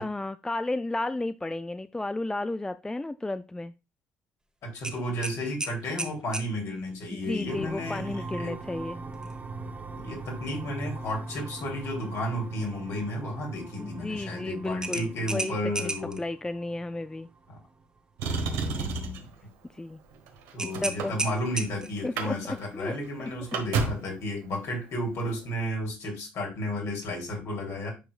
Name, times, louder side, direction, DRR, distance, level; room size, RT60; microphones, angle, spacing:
voice 1, 0.0-3.7 7.1-9.0 13.8-17.3 19.7-20.0 20.6-21.1 22.0-22.3 22.7-23.3, left 2 dB, 10° left, 13 dB, 0.3 m, -33 dB
voice 2, 4.6-8.6 10.0-16.2 18.5-19.2 20.5-27.9, left 1 dB, 60° left, 1 dB, 3.1 m, -33 dB
sound 1, 4.8-6.5 9.1-9.4 9.8-9.9 14.8-16.2 20.6-22.0, right 2 dB, 15° right, 1.4 m, -33 dB
sound 2, 7.5-18.0, right 2 dB, 30° right, 1.0 m, -41 dB
Motor vehicle (road), 18.2-19.3 20.1-21.7 22.0-22.3 22.6-22.7 23.0-24.1 25.2-25.3, right 4 dB, 75° right, 1.3 m, -30 dB
10.0 x 4.7 x 2.4 m, 0.27 s
hypercardioid pair, 55°, 6 cm